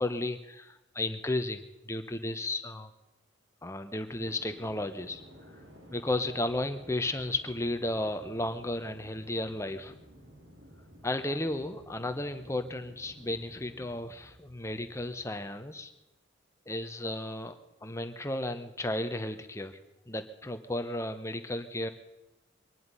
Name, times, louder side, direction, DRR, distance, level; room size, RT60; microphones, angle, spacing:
voice 1, 0.0-2.9 3.6-5.2 5.5-5.6 5.9-10.0 11.0-15.9 16.7-17.5 17.8-19.8 20.1-21.9, left 1 dB, 15° left, 8 dB, 0.9 m, -34 dB
sound 1, 4.2-15.3, equal, 70° right, 2.3 m, -54 dB
23.0 x 11.0 x 5.5 m, 0.97 s
head